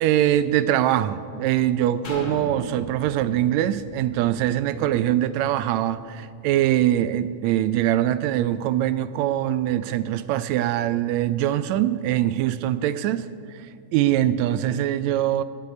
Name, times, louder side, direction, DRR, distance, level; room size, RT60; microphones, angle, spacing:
voice 1, 0.0-13.3 13.5-15.4, right 12 dB, 85° right, 14 dB, 1.6 m, -23 dB
sound 1, 2.0-5.8 6.3-6.4, left 2 dB, 65° left, 3.7 m, -40 dB
15.5 x 8.5 x 9.5 m, 2.4 s
omnidirectional pair, 3.6 m